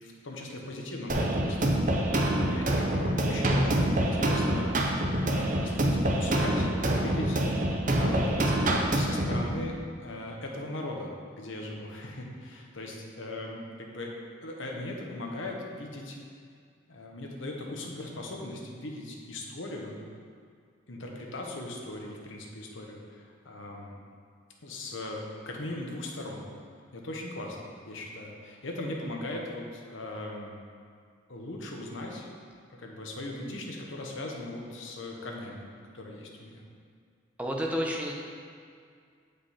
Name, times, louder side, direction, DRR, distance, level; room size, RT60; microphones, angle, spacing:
voice 1, 0.0-1.7 2.1-4.8 5.2-9.8 10.0-14.1 14.4-16.2 16.9-20.0 20.9-23.9 24.6-26.4 26.9-30.6 31.3-32.3 32.7-35.6 35.9-36.6, left 1 dB, 75° left, 0 dB, 1.1 m, -39 dB
sound 1, 1.1-9.5, right 1 dB, 40° right, 0.7 m, -26 dB
voice 2, 37.4-38.1, equal, 5° right, -1 dB, 0.7 m, -30 dB
8.0 x 5.2 x 4.3 m, 2.2 s
head